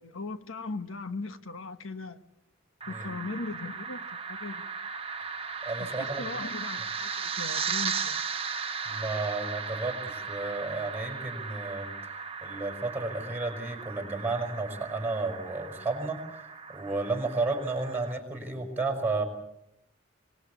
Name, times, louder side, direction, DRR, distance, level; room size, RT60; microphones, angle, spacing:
voice 1, 0.0-2.2 2.9-4.7 5.8-8.2, left 3 dB, 75° left, 1.2 m, -39 dB
sound 1, 2.8-18.1, right 5 dB, 30° right, 1.1 m, -36 dB
voice 2, 5.6-6.3 8.9-11.9 12.4-16.2 16.7-19.2, right 3 dB, 10° right, 5.7 m, -32 dB
24.5 x 20.5 x 8.4 m
head